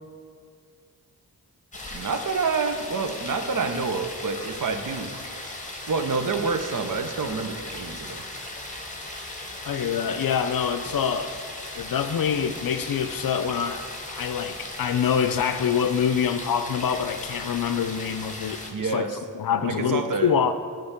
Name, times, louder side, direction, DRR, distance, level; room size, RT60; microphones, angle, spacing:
sound 1, 1.7-18.7, left 2 dB, 20° left, 1.1 m, -37 dB
voice 1, 1.9-5.1 5.9-8.2 18.7-19.2 19.6-20.3, right 4 dB, 55° right, 7 dB, 0.8 m, -28 dB
voice 2, 9.7-11.3 11.7-13.8 14.1-19.1 19.3-20.5, left 7 dB, 65° left, 10 dB, 0.5 m, -25 dB
9.5 x 3.5 x 5.7 m, 2.1 s
cardioid pair, 60°, 38 cm